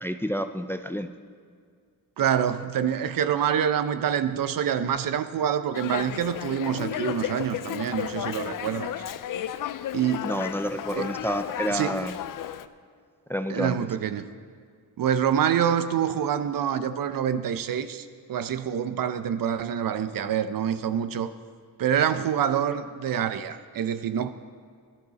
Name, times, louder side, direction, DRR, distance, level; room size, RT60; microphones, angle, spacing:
voice 1, 0.0-1.1 10.2-12.1 13.3-13.8, equal, 5° left, 9 dB, 0.4 m, -29 dB
voice 2, 2.2-8.9 9.9-10.3 10.9-11.1 11.7-12.0 13.5-14.3 15.0-21.3 21.8-24.3, right 9 dB, 70° right, 11 dB, 0.7 m, -26 dB
Dog, 5.7-12.7, left 11 dB, 65° left, 0.5 m, -33 dB
16.5 x 12.0 x 4.1 m, 2.1 s
cardioid pair, 115°, 36 cm